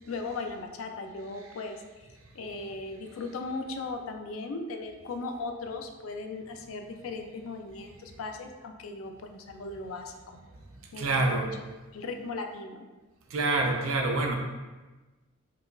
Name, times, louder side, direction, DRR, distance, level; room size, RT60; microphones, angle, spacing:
voice 1, 0.1-1.8 2.3-10.1 10.9-11.4 11.9-12.9, left 3 dB, 75° left, 5 dB, 0.4 m, -37 dB
voice 2, 11.0-11.5 13.3-14.3, right 2 dB, 75° right, 2 dB, 0.5 m, -26 dB
4.7 x 2.3 x 2.3 m, 1.2 s
head